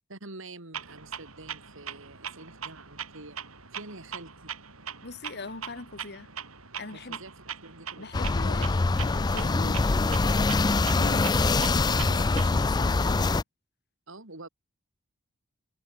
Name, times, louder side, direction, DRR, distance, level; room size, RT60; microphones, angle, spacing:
voice 1, 0.1-3.4 3.7-4.5 6.9-8.1 14.1-14.5, right 2 dB, 65° right, 3.6 m, -46 dB
Clock, 0.7-12.7, right 7 dB, 85° right, 7.9 m, -41 dB
voice 2, 5.0-6.3 6.8-7.2 8.0-13.4, left 3 dB, 50° left, 1.6 m, -41 dB
sound 1, 8.1-13.4, left 3 dB, 20° left, 0.4 m, -24 dB
head